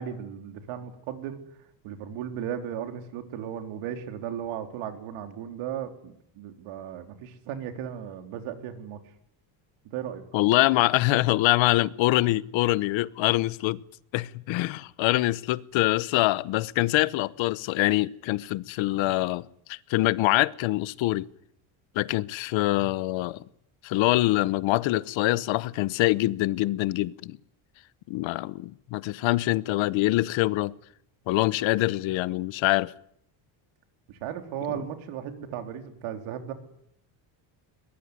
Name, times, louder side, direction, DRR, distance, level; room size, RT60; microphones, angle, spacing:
voice 1, 0.0-1.4 1.8-9.0 9.8-10.2 34.1-36.5, right 9 dB, 90° right, 3.9 m, -36 dB
voice 2, 10.3-13.8 14.1-21.3 21.9-23.4 23.8-27.4 28.1-30.7 31.3-32.9, left 18 dB, 70° left, 1.0 m, -24 dB
22.0 x 20.5 x 9.9 m
cardioid pair, 155°, 48 cm